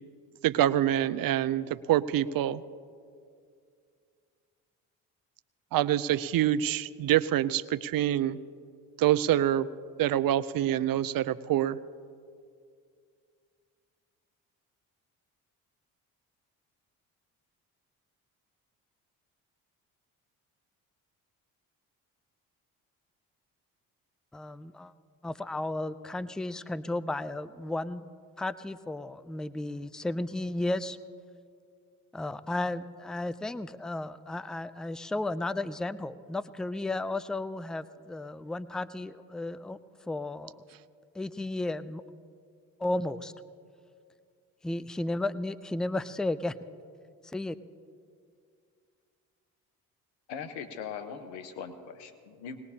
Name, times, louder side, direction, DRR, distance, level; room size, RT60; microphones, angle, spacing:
voice 1, 0.4-2.6 5.7-8.4 9.0-9.7 10.0-11.8, right 12 dB, 55° right, 16 dB, 0.6 m, -26 dB
voice 2, 24.3-24.9 25.2-28.0 28.4-31.0 32.1-39.8 40.1-40.5 41.1-42.0 42.8-43.3 44.6-46.5 47.3-47.6, left 2 dB, ahead, 14 dB, 0.5 m, -33 dB
voice 3, 50.3-52.6, left 6 dB, 80° left, 9 dB, 1.2 m, -40 dB
21.0 x 19.0 x 2.8 m, 2.3 s
hypercardioid pair, 55°, 41 cm